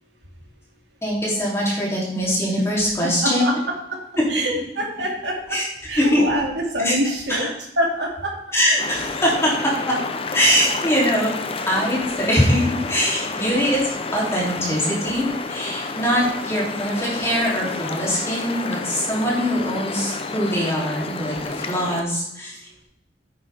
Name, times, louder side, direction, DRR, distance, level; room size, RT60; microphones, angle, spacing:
voice 1, 1.0-3.4 4.2-4.4 5.5-5.6 6.0-6.2 6.8-6.9 7.3-7.5 8.5-10.0 10.3-11.3 11.7-13.8 14.1-22.8, equal, 15° left, -5 dB, 3.2 m, -22 dB
voice 2, 3.2-3.5 3.9-4.0 4.3-5.4 5.9-7.5 7.8-8.3, equal, 75° right, 0 dB, 2.5 m, -25 dB
sound 1, 8.8-22.0, left 3 dB, 30° left, 0.7 m, -30 dB
9.9 x 9.4 x 3.5 m, 0.77 s
head